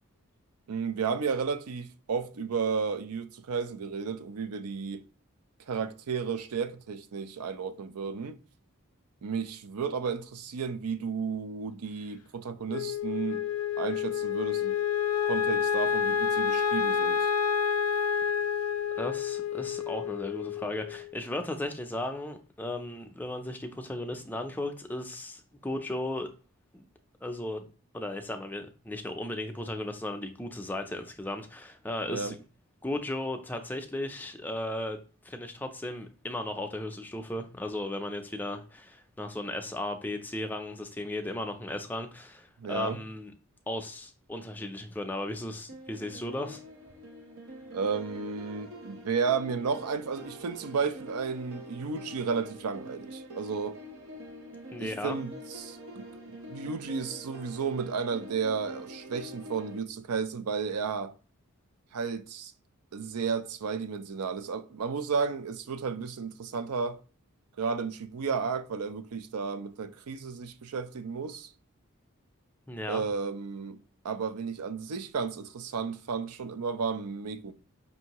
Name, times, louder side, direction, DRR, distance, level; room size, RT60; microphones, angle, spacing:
voice 1, 0.7-5.0 5.7-8.4 9.2-13.4 13.8-14.7 15.2-17.3 32.1-32.3 42.6-43.0 47.7-53.8 54.8-56.1 56.5-61.1 61.9-62.5 62.9-67.0 67.6-71.5 72.9-73.8 74.0-77.5, right 5 dB, 90° right, 0.5 m, -33 dB
Wind instrument woodwind instrument, 12.7-21.1, left 7 dB, 80° left, 0.5 m, -29 dB
voice 2, 19.0-26.3 26.7-26.8 27.2-27.6 27.9-32.4 32.8-35.0 35.2-43.3 43.7-46.6 54.7-55.2 72.7-73.0, left 1 dB, 10° left, 0.4 m, -36 dB
sound 1, 45.7-59.8, equal, 70° right, 0.9 m, -45 dB
5.5 x 2.6 x 2.9 m
head